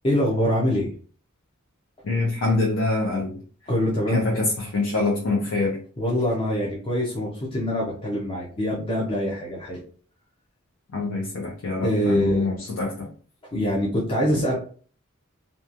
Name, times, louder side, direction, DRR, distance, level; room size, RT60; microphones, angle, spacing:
voice 1, 0.0-0.9 3.7-4.4 6.0-9.8 11.8-12.5 13.5-14.5, equal, 25° left, 0.6 m, -24 dB
voice 2, 2.0-3.4 4.1-5.8 10.9-13.1, left 2 dB, 70° left, 0.6 m, -25 dB
2.9 x 2.3 x 2.5 m
head